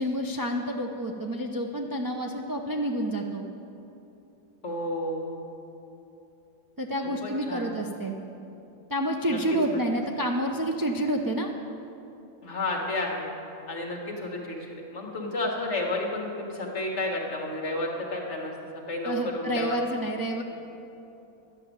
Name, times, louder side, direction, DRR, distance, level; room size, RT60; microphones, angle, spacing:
voice 1, 0.0-3.4 6.8-8.2 8.9-11.5 19.0-20.4, right 1 dB, 35° right, 1 dB, 0.3 m, -29 dB
voice 2, 4.6-5.3 7.0-7.7 9.3-9.4 9.7-9.8 12.4-13.3 13.7-18.5 18.9-19.8, left 2 dB, 55° left, -1 dB, 1.9 m, -31 dB
12.0 x 6.7 x 8.8 m, 2.9 s
omnidirectional pair, 1.5 m